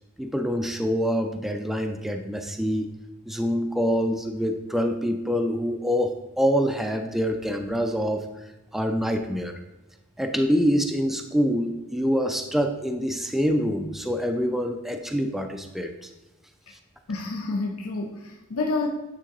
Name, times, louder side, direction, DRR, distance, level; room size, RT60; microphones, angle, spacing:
voice 1, 0.2-2.9 3.3-8.3 8.7-9.6 10.2-16.1, equal, ahead, 5 dB, 0.3 m, -25 dB
voice 2, 17.1-18.9, left 3 dB, 80° left, 1 dB, 0.7 m, -29 dB
9.1 x 3.6 x 4.0 m, 1.0 s
head